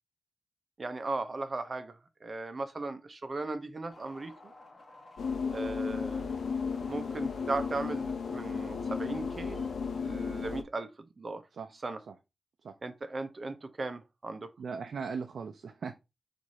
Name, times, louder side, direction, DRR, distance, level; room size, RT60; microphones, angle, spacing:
voice 1, 0.8-4.5 5.5-6.2 6.9-9.7 10.0-11.4 11.8-12.0 12.8-14.5, right 3 dB, 35° right, 0.6 m, -37 dB
sound 1, 3.9-10.0, left 2 dB, 40° left, 1.1 m, -53 dB
sound 2, 5.2-10.6, left 5 dB, 90° left, 0.5 m, -34 dB
voice 2, 14.6-15.9, right 5 dB, 75° right, 0.4 m, -38 dB
4.7 x 2.6 x 4.1 m
wide cardioid pair, 170°, 0 cm